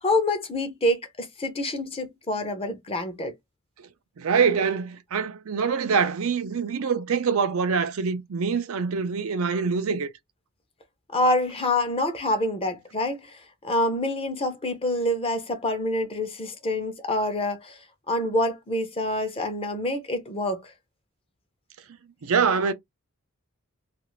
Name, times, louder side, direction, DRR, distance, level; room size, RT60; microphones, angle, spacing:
voice 1, 0.0-3.3 11.1-20.7, left 1 dB, 25° left, 0.6 m, -27 dB
voice 2, 4.2-10.1 22.2-22.7, right 5 dB, 75° right, 0.5 m, -24 dB
2.4 x 2.4 x 3.0 m
head